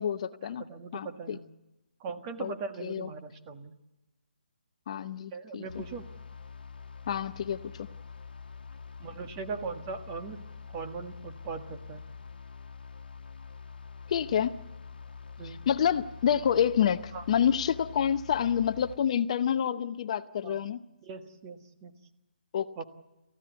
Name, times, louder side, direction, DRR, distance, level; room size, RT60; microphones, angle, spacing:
voice 1, 0.0-0.6 0.9-1.4 2.4-2.5 2.8-3.1 4.9-5.8 7.1-7.9 14.1-14.5 15.4-20.8 22.5-22.8, left 8 dB, 40° left, 11 dB, 0.7 m, -28 dB
voice 2, 0.6-1.5 2.0-3.7 5.3-6.0 9.0-10.4 10.7-12.0 15.4-15.6 17.1-17.2 20.4-20.6 21.0-22.0 22.8-22.9, right 5 dB, 25° right, 6 dB, 1.6 m, -39 dB
sound 1, 5.7-19.0, left 5 dB, 70° left, 1.3 m, -46 dB
29.0 x 15.0 x 8.2 m, 1.0 s
figure-of-eight pair, 145°, 5 cm